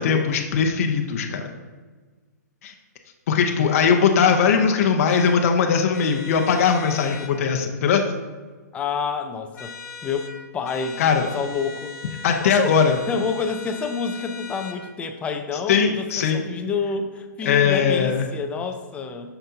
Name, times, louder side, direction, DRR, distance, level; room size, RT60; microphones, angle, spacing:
voice 1, 0.0-1.4 2.6-2.7 3.3-8.1 11.0-11.2 12.2-13.0 15.7-16.4 17.4-18.3, left 6 dB, 50° left, 4 dB, 0.7 m, -20 dB
sound 1, 5.1-5.4 5.9-7.3 9.5-10.3 10.6-14.8, left 4 dB, 65° left, 1.1 m, -40 dB
voice 2, 8.7-9.8 10.0-11.9 12.4-12.8 13.1-19.3, left 5 dB, 15° left, 6 dB, 0.5 m, -28 dB
7.3 x 5.8 x 2.8 m, 1.4 s
hypercardioid pair, 145°, 10 cm